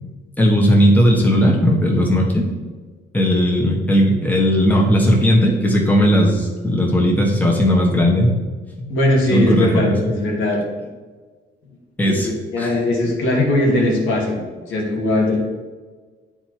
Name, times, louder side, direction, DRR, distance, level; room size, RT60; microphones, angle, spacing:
voice 1, 0.4-2.5 3.1-8.3 8.8-8.9 9.3-10.0 12.0-12.3 12.6-12.8, equal, 10° left, -2 dB, 1.5 m, -16 dB
voice 2, 8.9-10.6 12.1-15.4, left 1 dB, 80° left, -3 dB, 1.9 m, -20 dB
9.6 x 4.5 x 3.1 m, 1.4 s
cardioid pair, 90°, 20 cm